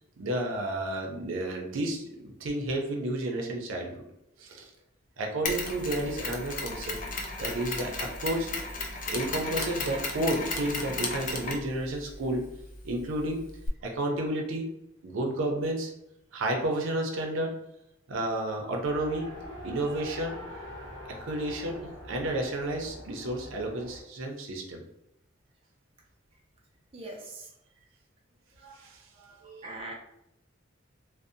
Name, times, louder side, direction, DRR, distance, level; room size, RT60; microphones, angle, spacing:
voice 1, 0.2-3.9 4.4-4.7 5.2-7.0 7.4-8.5 9.1-12.5 12.8-13.5 13.8-14.7 15.0-15.9 16.3-17.5 18.1-19.3 19.6-20.4 21.1-24.8 28.6-29.8, right 1 dB, 85° right, 1 dB, 0.5 m, -31 dB
Mechanisms, 5.4-13.7, left 3 dB, 40° left, 0.4 m, -35 dB
Race car auto racing, 18.8-24.0, equal, 65° left, 0.8 m, -44 dB
voice 2, 26.9-27.5 29.6-29.9, right 2 dB, 30° right, -1 dB, 0.4 m, -40 dB
2.6 x 2.0 x 2.5 m, 0.81 s
head